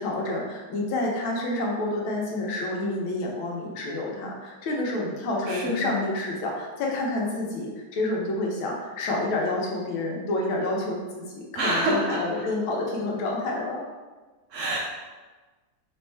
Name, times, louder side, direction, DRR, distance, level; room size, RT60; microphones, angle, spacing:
voice 1, 0.0-13.9, left 2 dB, 75° left, -2 dB, 1.6 m, -29 dB
voice 2, 5.5-6.0 11.5-12.4 14.5-14.8, equal, 80° right, -4 dB, 0.7 m, -27 dB
4.4 x 3.5 x 3.3 m, 1.3 s
omnidirectional pair, 2.3 m